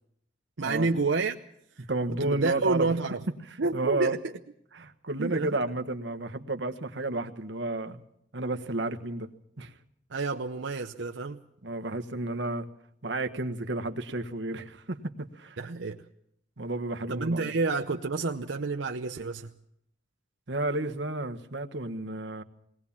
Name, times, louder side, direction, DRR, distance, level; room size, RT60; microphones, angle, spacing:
voice 1, 0.6-1.3 2.1-3.2 3.6-4.3 5.2-5.6 10.1-11.4 15.6-16.0 17.1-19.5, right 3 dB, 90° right, 4 dB, 0.8 m, -29 dB
voice 2, 1.9-2.9 3.4-4.2 4.7-8.0 8.3-9.3 9.6-9.7 11.6-12.7 13.0-15.6 16.6-17.5 20.5-22.4, right 2 dB, 70° right, 6 dB, 1.3 m, -32 dB
21.0 x 18.0 x 7.2 m, 0.74 s
head